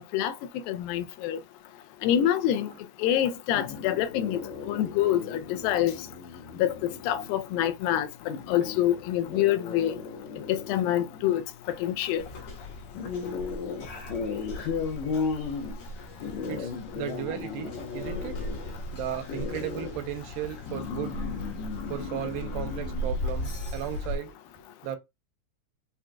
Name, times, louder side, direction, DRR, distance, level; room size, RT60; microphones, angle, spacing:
voice 1, 0.7-1.4 2.0-2.7 3.0-5.9 6.6-8.1 8.5-10.0 10.5-11.4 11.8-12.2, left 11 dB, 85° left, 2.3 m, -26 dB
sound 1, 3.5-23.1, left 5 dB, 70° left, 1.9 m, -37 dB
sound 2, 12.2-24.2, left 1 dB, 55° left, 1.7 m, -38 dB
voice 2, 16.5-18.5 18.9-21.2 21.9-24.3 24.8-25.0, right 11 dB, 85° right, 2.3 m, -35 dB
5.9 x 2.5 x 2.2 m
omnidirectional pair, 4.0 m